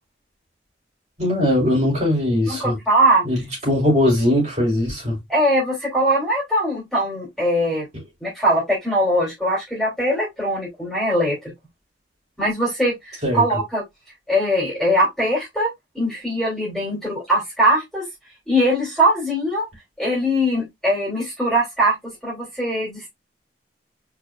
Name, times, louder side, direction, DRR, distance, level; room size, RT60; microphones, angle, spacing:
voice 1, 1.2-2.8 3.2-3.4 3.7-5.2 13.2-13.4, left 1 dB, 35° right, 3.6 m, -20 dB
voice 2, 2.5-3.2 5.3-7.9 8.2-11.5 12.4-13.8 14.3-15.7 15.9-18.1 18.5-19.7 20.0-23.1, equal, ahead, 2.8 m, -21 dB
4.8 x 4.3 x 2.3 m
head